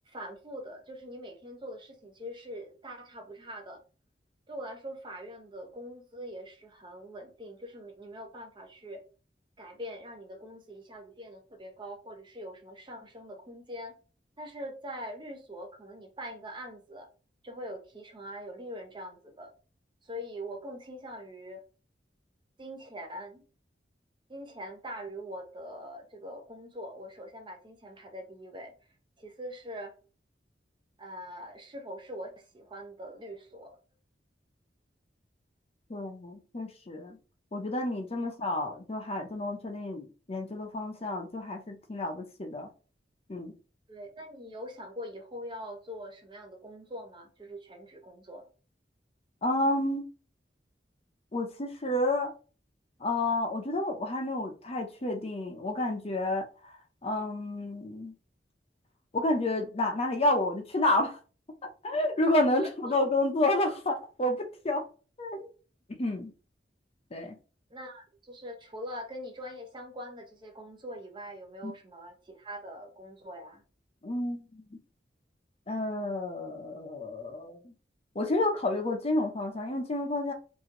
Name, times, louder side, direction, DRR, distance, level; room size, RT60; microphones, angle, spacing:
voice 1, 0.1-3.8 4.5-9.0 9.6-14.0 14.4-17.1 17.4-19.5 20.0-21.6 22.6-23.4 24.3-28.7 29.2-29.9 31.0-33.8 43.9-48.5 62.6-63.0 67.7-73.6, equal, 30° right, 0.7 m, -43 dB
voice 2, 35.9-37.2 37.5-42.7 43.3-43.5 49.4-50.1 51.3-52.3 53.0-56.7 57.0-58.1 59.1-61.2 61.6-64.8 65.2-65.5 66.0-66.3 67.1-67.4 71.6-71.7 74.0-74.8 75.7-77.7 78.1-80.3, left 2 dB, 35° left, 0.7 m, -30 dB
3.0 x 2.7 x 3.7 m
head